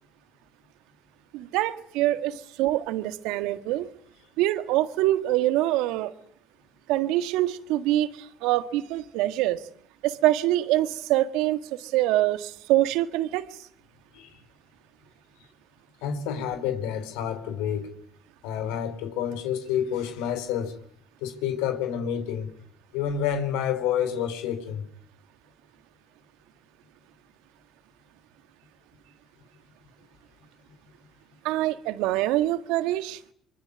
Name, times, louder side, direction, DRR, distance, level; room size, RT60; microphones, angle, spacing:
voice 1, 1.3-3.9 4.4-6.1 6.9-9.6 10.0-13.4 31.4-33.2, right 15 dB, 75° right, 1.7 m, -25 dB
voice 2, 16.0-17.9 18.4-20.7 21.2-22.5 22.9-24.8, left 9 dB, 80° left, 3.7 m, -29 dB
25.0 x 24.0 x 9.6 m
hypercardioid pair, 60°, 0 cm